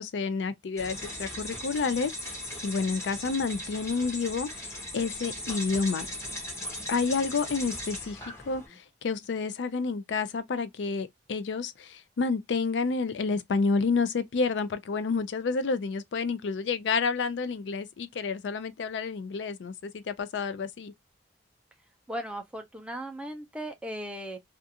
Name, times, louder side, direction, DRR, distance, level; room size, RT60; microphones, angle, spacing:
voice 1, 0.0-2.4 2.6-4.5 4.9-6.1 6.9-8.2 8.5-20.9, left 4 dB, 85° left, 0.4 m, -29 dB
sound 1, 0.8-8.7, left 1 dB, 15° left, 0.9 m, -38 dB
voice 2, 22.1-24.4, equal, 5° right, 0.5 m, -37 dB
2.4 x 2.4 x 2.6 m
head